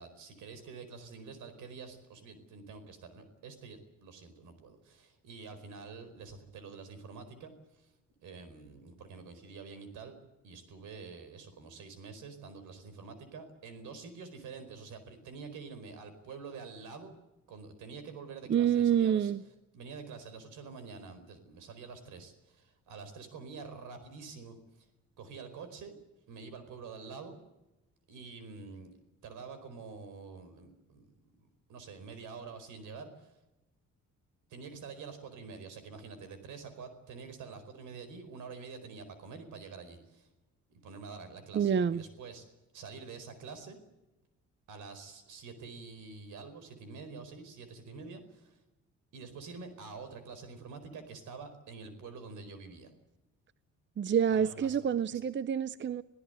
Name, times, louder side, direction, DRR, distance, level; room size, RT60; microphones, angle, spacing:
voice 1, 0.0-7.9 8.2-10.2 10.4-17.1 17.5-19.3 19.7-24.9 25.2-26.0 26.3-27.4 28.1-28.9 29.2-33.4 34.5-40.3 40.8-42.5 42.7-43.8 44.7-48.6 49.1-52.9 54.3-54.8 55.1-55.2, right 4 dB, 85° right, 4.7 m, -47 dB
voice 2, 18.5-19.4 41.5-42.0 54.0-56.0, right 8 dB, 40° right, 0.7 m, -27 dB
27.0 x 16.5 x 8.0 m
cardioid pair, 90°, 30 cm